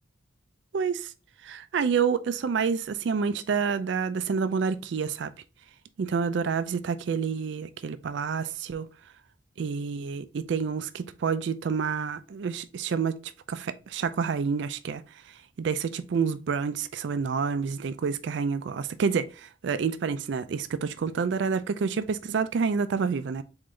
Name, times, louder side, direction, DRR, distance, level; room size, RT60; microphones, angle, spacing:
voice 1, 0.7-1.1 1.4-5.3 6.0-8.9 9.6-13.2 13.5-15.0 15.6-23.4, right 5 dB, 65° right, 0.4 m, -28 dB
3.9 x 3.8 x 3.1 m
head